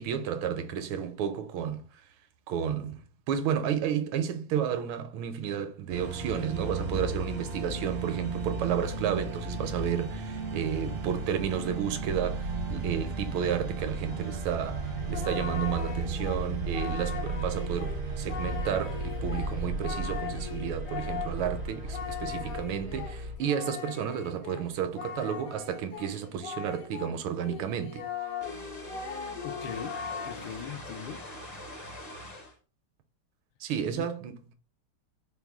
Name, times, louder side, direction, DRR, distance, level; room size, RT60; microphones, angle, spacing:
voice 1, 0.0-1.9 2.5-28.0 33.6-34.5, right 8 dB, 80° right, 1.4 m, -32 dB
sound 1, 5.9-23.4, right 3 dB, 60° right, 0.6 m, -34 dB
Singing, 14.0-27.2 27.4-30.7, left 6 dB, 65° left, 0.9 m, -40 dB
sound 2, 28.4-32.5, left 1 dB, 40° left, 0.5 m, -43 dB
voice 2, 29.4-30.0 30.2-31.3 33.9-34.1, left 9 dB, 80° left, 1.4 m, -40 dB
4.6 x 2.2 x 3.4 m
omnidirectional pair, 2.3 m